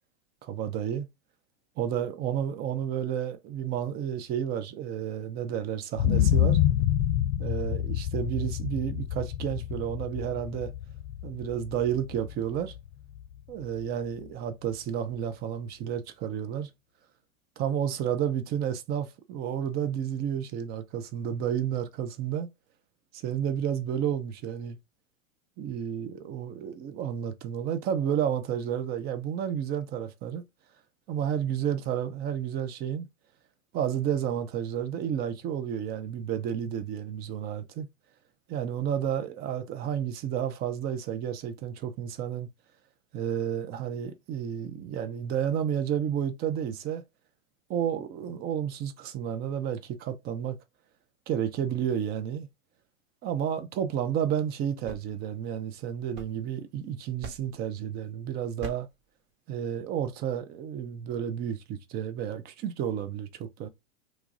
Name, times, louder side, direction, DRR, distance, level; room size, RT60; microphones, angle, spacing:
voice 1, 0.4-1.1 1.8-6.6 7.4-10.7 11.2-12.7 13.5-16.7 17.6-22.5 23.1-24.8 25.6-30.4 31.1-33.1 33.7-37.9 38.5-42.5 43.1-47.0 47.7-50.6 51.3-52.5 53.2-58.9 59.5-63.7, right 9 dB, 25° right, 0.4 m, -31 dB
sound 1, 6.0-13.9 14.3-14.4, left 11 dB, 60° left, 0.6 m, -28 dB
sound 2, 54.9-56.8 57.2-57.7 58.6-59.0, right 5 dB, 55° right, 1.2 m, -44 dB
3.1 x 2.3 x 3.6 m
hypercardioid pair, 110°, 42 cm